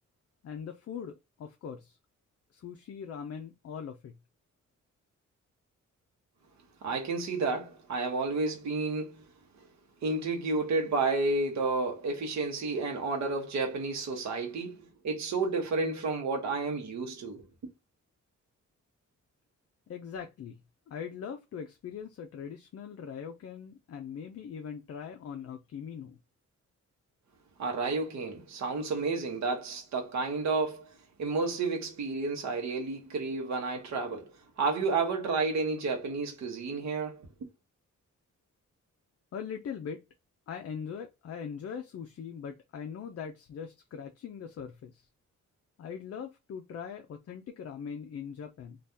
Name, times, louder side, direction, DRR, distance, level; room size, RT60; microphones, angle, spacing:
voice 1, 0.4-2.0 2.5-4.1 19.9-20.6 20.9-26.2 39.3-40.0 40.5-45.1 45.8-48.8, left 7 dB, 50° left, 0.4 m, -41 dB
voice 2, 6.8-9.2 10.0-17.4 27.6-30.9 31.2-37.3, right 3 dB, 60° right, 0.8 m, -31 dB
2.7 x 2.3 x 3.4 m
wide cardioid pair, 160°, 31 cm